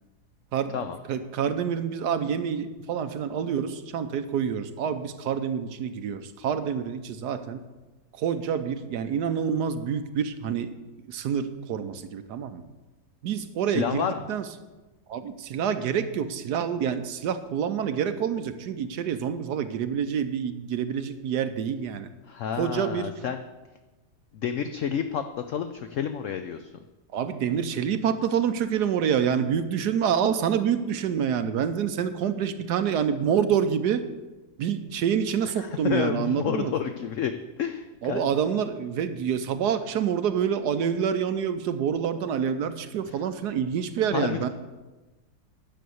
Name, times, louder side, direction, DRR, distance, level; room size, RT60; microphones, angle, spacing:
voice 1, 1.1-7.6 8.2-10.8 11.1-12.6 13.2-14.5 15.1-22.1 22.6-23.1 27.1-34.0 34.6-36.7 38.0-44.5, right 8 dB, 75° right, 10 dB, 1.2 m, -27 dB
voice 2, 13.7-14.2 22.3-23.4 24.3-26.7 35.6-37.3 37.6-38.2 44.1-44.5, left 8 dB, 65° left, 8 dB, 0.8 m, -30 dB
10.5 x 6.8 x 7.8 m, 1.2 s
omnidirectional pair, 1.8 m